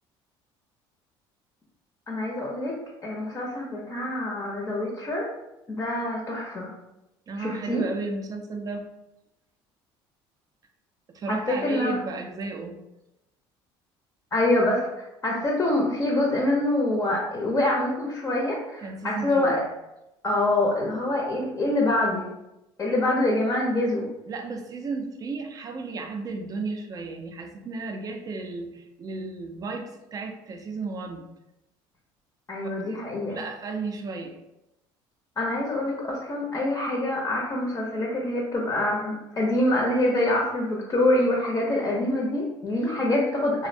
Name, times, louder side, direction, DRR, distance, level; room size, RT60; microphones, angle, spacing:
voice 1, 2.1-2.8 3.0-5.3 5.7-6.7 7.4-7.8 11.3-12.0 14.3-19.6 20.2-22.3 22.8-24.1 32.5-33.4 35.4-43.7, left 1 dB, 25° left, -2 dB, 0.5 m, -25 dB
voice 2, 7.3-8.8 11.1-12.8 18.8-19.7 24.3-31.3 32.6-32.8 33.2-34.4, right 3 dB, 35° right, 5 dB, 0.4 m, -34 dB
2.5 x 2.0 x 2.5 m, 0.91 s
supercardioid pair, 95°, 11 cm